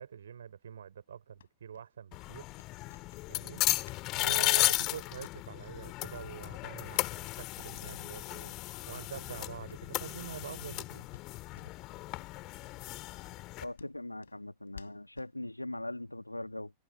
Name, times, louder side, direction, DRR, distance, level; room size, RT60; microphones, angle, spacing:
voice 1, 0.0-2.5 3.3-3.6 4.1-8.5 8.9-11.1, right 8 dB, 65° right, 5.7 m, -45 dB
sound 1, 1.3-4.0 4.3-5.7 6.1-6.2 6.5-7.1 7.5-7.6 8.0-8.1 8.3-8.5 8.8-10.9 11.1-11.9 12.2-12.3 12.6-12.7 13.2-15.3, left 8 dB, 65° left, 7.0 m, -57 dB
sound 2, 2.1-13.6, left 20 dB, 40° left, 2.4 m, -35 dB
voice 2, 13.6-16.7, left 1 dB, 85° left, 2.1 m, -40 dB
figure-of-eight pair, 90°, 0 cm